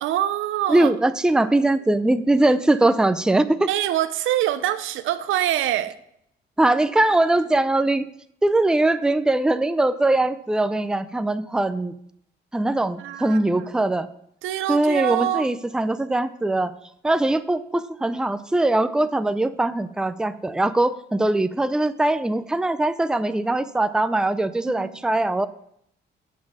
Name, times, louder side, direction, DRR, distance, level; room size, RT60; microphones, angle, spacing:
voice 1, 0.0-0.9 3.7-6.0 13.0-13.7 14.4-15.5 24.8-25.0, right 12 dB, 85° right, 0.6 m, -25 dB
voice 2, 0.7-3.7 6.6-8.0 8.4-11.9 12.5-14.1 14.7-16.7 17.0-25.5, right 2 dB, 5° right, 0.4 m, -21 dB
7.5 x 6.1 x 6.1 m
cardioid pair, 90°, 20 cm